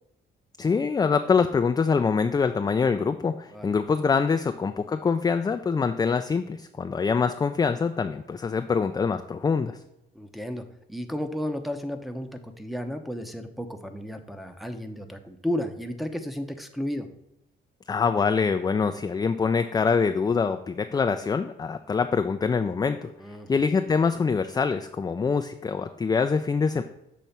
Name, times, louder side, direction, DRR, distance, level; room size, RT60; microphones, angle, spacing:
voice 1, 0.6-9.8 17.9-23.1 23.5-26.8, left 5 dB, 20° left, 8 dB, 0.3 m, -24 dB
voice 2, 10.1-17.1 23.2-23.5, left 1 dB, ahead, 5 dB, 0.7 m, -33 dB
6.7 x 3.1 x 5.7 m, 0.83 s
cardioid pair, 90°, 20 cm